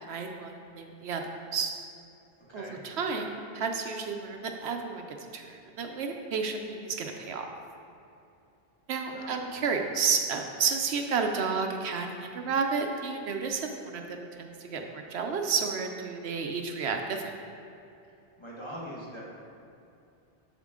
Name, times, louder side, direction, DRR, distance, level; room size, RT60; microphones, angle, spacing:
voice 1, 0.0-1.2 1.5-1.7 2.5-7.5 8.9-17.3, right 5 dB, 75° right, 4 dB, 0.9 m, -31 dB
voice 2, 2.5-2.8 9.1-9.4 18.4-19.2, equal, 25° left, -6 dB, 1.5 m, -41 dB
7.3 x 6.7 x 3.7 m, 2.7 s
omnidirectional pair, 1.1 m